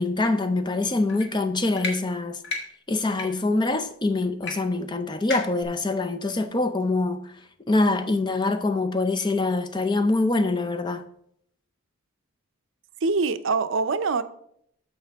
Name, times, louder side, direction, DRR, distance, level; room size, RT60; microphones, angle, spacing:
voice 1, 0.0-2.4 2.9-7.3 7.7-11.0, left 2 dB, 20° left, 0.5 m, -24 dB
sound 1, 1.1-1.3 1.8-1.9 2.4-2.6 3.1-3.3 4.4-4.5 4.8-4.9 5.3-5.6, left 3 dB, 50° left, 1.9 m, -31 dB
voice 2, 13.0-14.2, right 4 dB, 60° right, 0.5 m, -24 dB
14.0 x 5.2 x 3.5 m
head